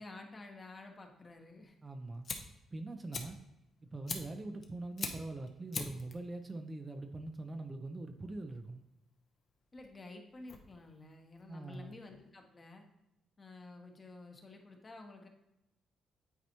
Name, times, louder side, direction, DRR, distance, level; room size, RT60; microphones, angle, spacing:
voice 1, 0.0-1.7 9.7-12.8 13.4-15.3, left 2 dB, 30° left, 3 dB, 1.1 m, -51 dB
Fire, 1.8-12.3, left 4 dB, 50° left, 0.9 m, -46 dB
voice 2, 1.8-2.3 2.7-3.4 3.9-8.8 11.5-11.9, right 2 dB, 25° right, 5 dB, 0.6 m, -43 dB
9.4 x 4.1 x 3.0 m, 0.90 s
cardioid pair, 90°, 0 cm